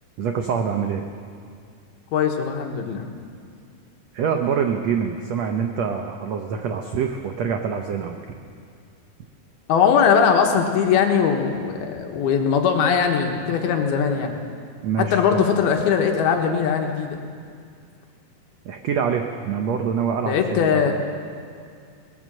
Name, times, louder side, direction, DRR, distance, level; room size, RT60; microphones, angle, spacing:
voice 1, 0.2-1.0 4.1-8.4 14.8-15.4 18.6-20.9, right 7 dB, 85° right, 4 dB, 1.5 m, -25 dB
voice 2, 2.1-3.1 9.7-14.4 15.0-17.2 20.2-20.9, left 7 dB, 85° left, 3 dB, 3.3 m, -20 dB
22.0 x 18.5 x 6.4 m, 2.2 s
omnidirectional pair, 4.4 m